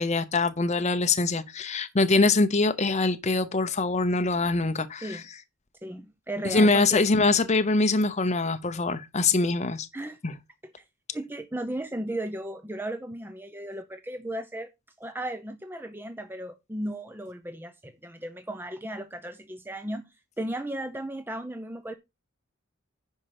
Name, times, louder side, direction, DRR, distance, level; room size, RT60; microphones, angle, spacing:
voice 1, 0.0-5.2 6.4-9.9 10.2-10.3, left 3 dB, 30° left, 0.7 m, -24 dB
voice 2, 5.8-7.0 9.9-10.2 10.8-10.9 11.1-14.7 15.0-22.0, right 1 dB, 10° right, 0.6 m, -35 dB
10.0 x 5.6 x 4.8 m
head